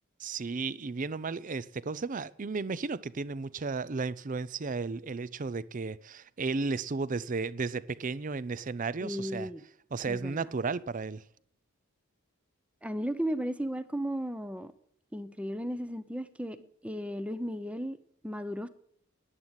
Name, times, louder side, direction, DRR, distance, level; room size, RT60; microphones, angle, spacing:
voice 1, 0.2-9.5 9.9-11.2, right 4 dB, 40° right, 0.5 m, -34 dB
voice 2, 9.0-9.6 10.1-10.4 12.8-14.7 15.1-16.6 16.8-18.0 18.2-18.7, equal, 5° right, 0.7 m, -35 dB
11.0 x 10.5 x 8.0 m
head